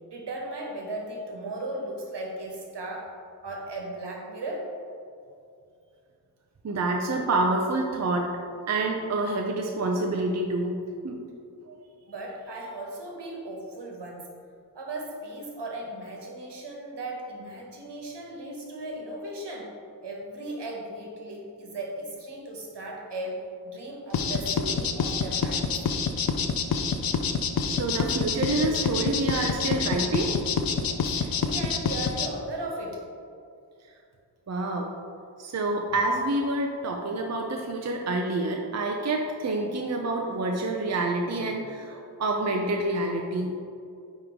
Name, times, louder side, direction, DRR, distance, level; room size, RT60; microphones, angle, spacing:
voice 1, 0.0-3.1 3.4-4.7 12.1-14.3 14.7-19.7 20.0-25.8 30.8-33.1, right 1 dB, 65° right, -1 dB, 1.5 m, -37 dB
voice 2, 6.6-8.3 8.7-10.8 11.0-11.2 11.7-11.8 27.7-30.4 34.5-34.9 35.4-43.5, right 2 dB, 35° right, 1 dB, 0.7 m, -27 dB
sound 1, 24.1-32.3, left 5 dB, 55° left, 0.6 m, -27 dB
9.2 x 3.2 x 3.6 m, 2.5 s
cardioid pair, 45°, 44 cm